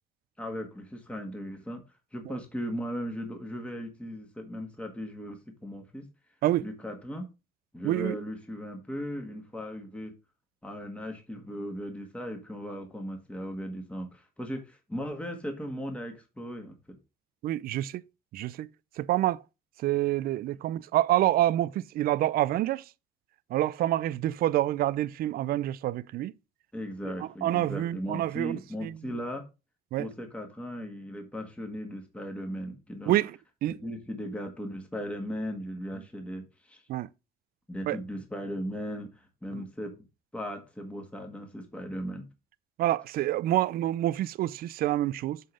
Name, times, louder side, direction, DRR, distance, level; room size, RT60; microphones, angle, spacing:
voice 1, 0.4-1.8 2.1-6.0 6.6-7.3 7.7-10.1 10.6-17.0 26.7-29.4 30.0-33.2 33.7-36.8 37.7-39.9 40.3-42.3, equal, 5° left, 1.7 m, -37 dB
voice 2, 7.8-8.2 17.4-18.0 18.3-18.7 19.0-19.4 19.8-22.8 23.5-26.3 27.4-28.9 29.9-30.1 33.1-33.8 36.9-37.1 37.9-38.0 39.5-39.6 42.8-45.4, right 14 dB, 60° right, 0.4 m, -27 dB
7.8 x 3.8 x 4.9 m
cardioid pair, 110°, 17 cm